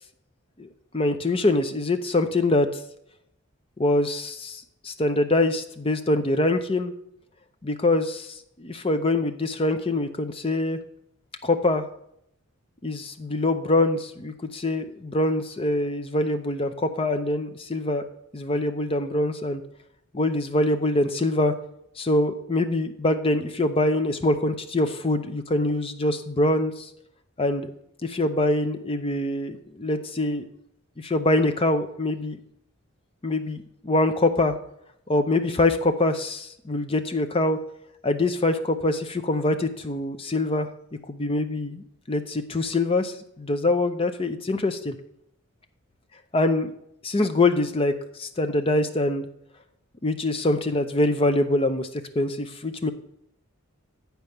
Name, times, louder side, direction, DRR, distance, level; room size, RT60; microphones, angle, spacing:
voice 1, 0.6-2.7 3.8-6.9 7.6-10.8 11.4-11.9 12.8-18.0 18.3-19.6 20.1-21.5 22.0-26.9 27.4-27.7 28.0-30.5 31.0-32.4 33.2-34.5 35.1-37.6 38.0-40.7 41.1-44.9 46.3-46.7 47.0-47.9 48.2-49.3 50.0-51.9 52.1-52.9, left 2 dB, 25° left, 8 dB, 0.5 m, -24 dB
8.6 x 4.6 x 6.5 m, 0.75 s
head